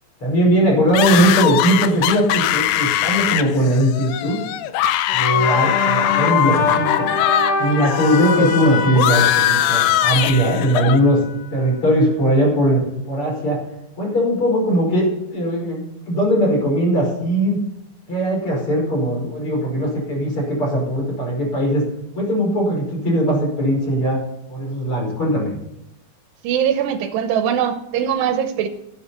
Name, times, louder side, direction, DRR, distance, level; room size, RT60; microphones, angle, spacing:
voice 1, 0.2-4.5 5.1-7.1 7.6-11.2 11.5-12.8 13.1-13.6 14.0-17.6 18.1-21.8 22.1-24.2 24.5-25.5, equal, 30° left, -2 dB, 5.8 m, -19 dB
sound 1, 0.9-7.5 7.8-11.0, left 13 dB, 90° left, 3.0 m, -21 dB
sound 2, 5.1-11.5, left 4 dB, 70° left, 3.7 m, -24 dB
voice 2, 26.4-28.7, right 9 dB, 80° right, 8 dB, 2.8 m, -21 dB
12.5 x 11.0 x 5.6 m, 0.82 s
omnidirectional pair, 5.0 m